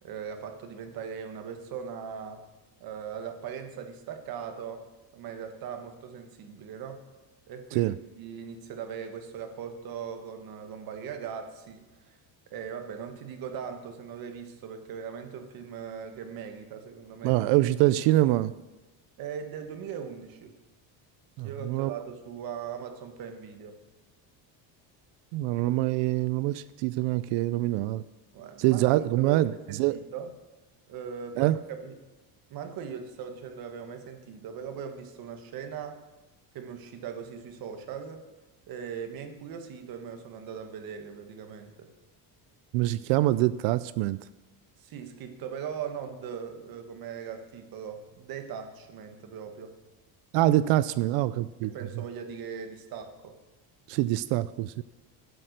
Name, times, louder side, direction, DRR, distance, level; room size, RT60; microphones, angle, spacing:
voice 1, 0.0-2.4 2.8-4.9 5.1-7.0 7.5-7.9 8.2-12.2 12.5-17.4 19.2-20.5 21.4-23.7 28.3-28.9 29.2-30.3 30.9-31.5 31.8-32.0 32.5-36.0 36.5-38.2 38.7-41.9 44.8-49.7 51.6-53.3, right 7 dB, 50° right, 6 dB, 1.5 m, -39 dB
voice 2, 17.2-18.5 21.4-21.9 25.3-28.0 28.6-30.0 31.4-31.6 42.7-44.2 50.3-51.7 53.9-54.8, right 16 dB, 70° right, 16 dB, 0.5 m, -25 dB
12.0 x 7.9 x 6.6 m, 1.1 s
cardioid pair, 175°, 46 cm